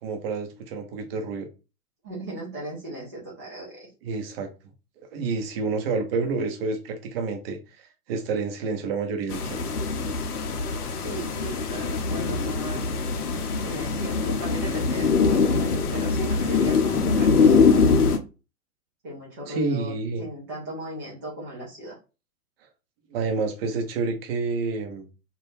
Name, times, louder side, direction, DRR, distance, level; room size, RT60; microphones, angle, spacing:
voice 1, 0.0-1.5 4.0-4.5 5.1-9.6 19.5-20.2 23.1-25.1, right 4 dB, 40° right, 0.8 m, -29 dB
voice 2, 2.0-3.9 11.0-12.9 13.6-17.8 19.0-22.0, right 1 dB, 15° right, 0.3 m, -37 dB
sound 1, 9.3-18.2, left 4 dB, 75° left, 0.7 m, -23 dB
2.3 x 2.2 x 3.1 m
figure-of-eight pair, 115°, 46 cm